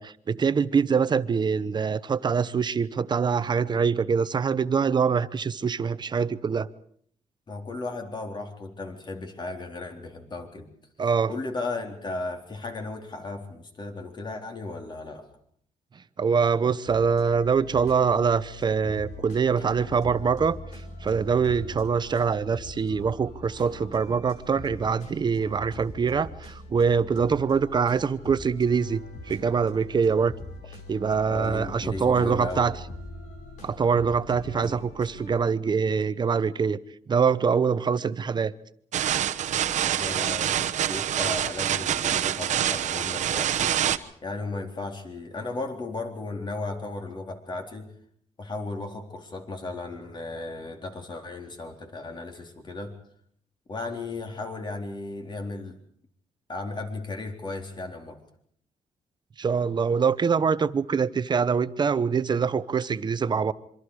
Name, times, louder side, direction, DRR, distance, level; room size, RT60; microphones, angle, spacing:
voice 1, 0.0-6.7 11.0-11.3 16.2-20.6 21.0-29.0 29.3-30.3 30.9-32.8 33.6-36.8 37.1-38.5 59.4-63.5, right 6 dB, 35° right, 0.9 m, -24 dB
voice 2, 7.5-10.7 11.3-15.3 19.6-19.7 21.7-22.0 31.3-32.7 34.6-34.8 40.0-43.8 44.2-47.9 48.4-53.0 53.7-55.8 56.5-58.2, left 3 dB, 40° left, 3.8 m, -35 dB
sound 1, 16.9-35.4, left 2 dB, 85° left, 5.2 m, -42 dB
sound 2, 38.9-44.0, right 10 dB, 75° right, 1.1 m, -26 dB
26.5 x 24.5 x 4.9 m
cardioid pair, 125°, 12 cm